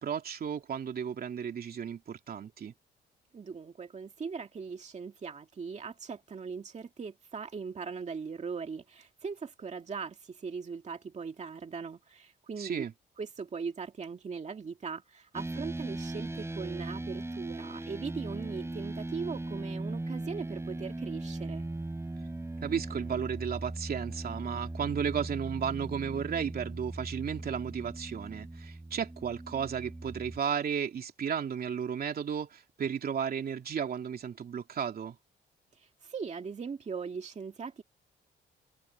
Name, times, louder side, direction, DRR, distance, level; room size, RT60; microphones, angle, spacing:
voice 1, 0.0-2.7 12.6-12.9 22.6-35.1, right 7 dB, 55° right, 2.9 m, -34 dB
voice 2, 3.3-12.8 13.2-21.6 35.8-37.8, right 5 dB, 35° right, 2.2 m, -39 dB
sound 1, 15.3-30.4, right 2 dB, 15° right, 5.1 m, -39 dB
cardioid pair, 100°, 19 cm